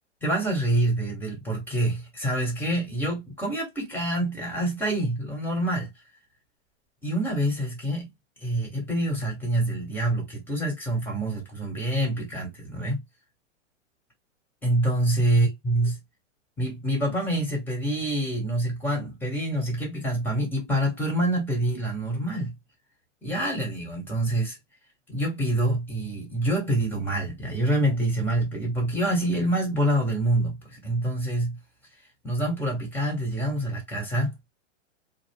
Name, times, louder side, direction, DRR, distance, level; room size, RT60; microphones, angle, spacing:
voice 1, 0.2-5.9 7.0-8.1 8.4-13.0 14.6-15.9 16.6-22.5 23.2-24.6 25.1-31.6 32.2-34.3, right 1 dB, 5° left, 1.3 m, -26 dB
2.4 x 2.1 x 3.6 m
hypercardioid pair, 130°, 37 cm